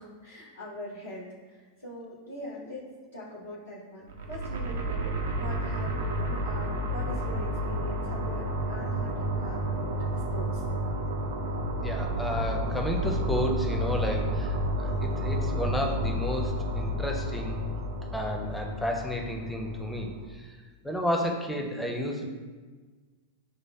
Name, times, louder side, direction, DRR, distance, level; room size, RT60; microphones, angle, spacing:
voice 1, 0.0-2.8 3.1-10.6, left 1 dB, 85° left, -8 dB, 0.7 m, -42 dB
sound 1, 4.1-20.3, right 1 dB, 65° right, 0.4 m, -31 dB
voice 2, 11.8-17.7 18.1-20.5 20.8-22.3, equal, 5° left, 1 dB, 0.5 m, -32 dB
6.1 x 2.0 x 2.2 m, 1.4 s
figure-of-eight pair, 90°, 0 cm